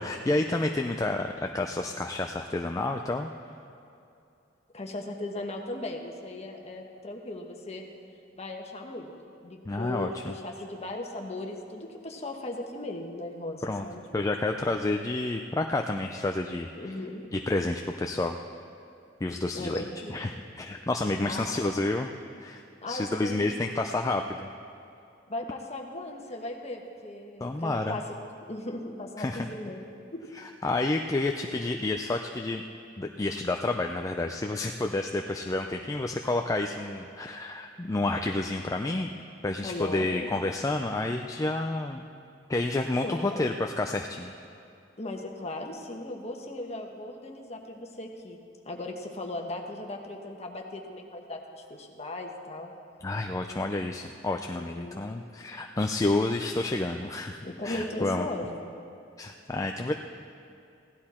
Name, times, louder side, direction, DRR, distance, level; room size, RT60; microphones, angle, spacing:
voice 1, 0.0-3.3 9.7-10.3 13.6-13.8 14.1-16.7 17.3-18.4 19.2-19.8 20.1-22.1 22.4-24.5 27.4-28.0 29.2-29.5 30.4-32.6 33.0-39.1 39.4-42.0 42.5-44.3 53.0-58.3 59.2-59.9, left 2 dB, 20° left, 4 dB, 0.4 m, -29 dB
voice 2, 4.7-7.8 8.3-9.1 9.4-14.0 16.8-17.2 19.5-20.2 21.2-21.6 22.8-23.6 25.3-28.2 28.5-29.9 30.1-30.2 39.6-40.3 43.0-43.5 45.0-48.4 48.6-52.7 54.5-55.0 57.4-58.6, left 2 dB, 35° left, 2 dB, 1.2 m, -37 dB
16.0 x 11.5 x 4.3 m, 2.7 s
head